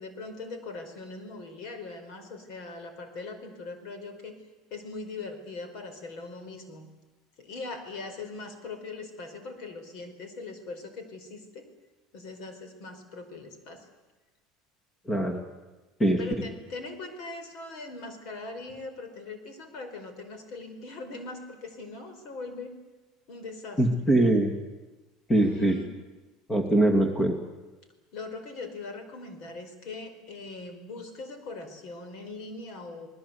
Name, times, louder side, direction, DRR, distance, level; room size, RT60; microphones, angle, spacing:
voice 1, 0.0-4.4 4.7-6.9 7.4-11.7 12.1-13.9 16.1-22.8 23.3-23.8 25.4-25.9 28.1-33.1, left 3 dB, 60° left, 8 dB, 4.8 m, -41 dB
voice 2, 15.1-15.4 16.0-16.2 23.8-24.5 25.3-25.8 26.5-27.4, right 1 dB, 15° left, 4 dB, 2.4 m, -22 dB
29.5 x 20.0 x 8.3 m, 1.2 s
supercardioid pair, 140°, 0 cm